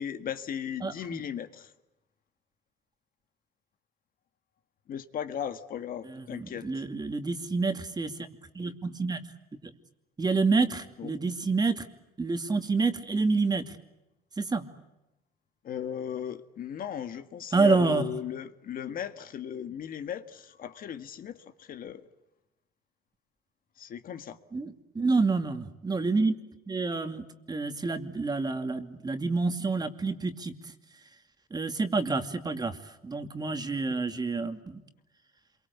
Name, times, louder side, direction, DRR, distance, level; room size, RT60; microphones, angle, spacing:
voice 1, 0.0-1.7 4.9-6.8 11.0-11.1 15.6-22.1 23.8-24.4 33.9-34.0, left 9 dB, 55° left, 9 dB, 1.7 m, -37 dB
voice 2, 0.8-1.2 6.1-8.1 8.5-9.2 10.2-11.9 12.2-13.7 14.4-14.7 17.5-18.0 24.5-26.3 26.7-30.6 31.5-32.8 33.0-34.8, right 3 dB, 25° right, 7 dB, 2.5 m, -28 dB
27.5 x 23.5 x 8.3 m, 0.95 s
cardioid pair, 100°, 18 cm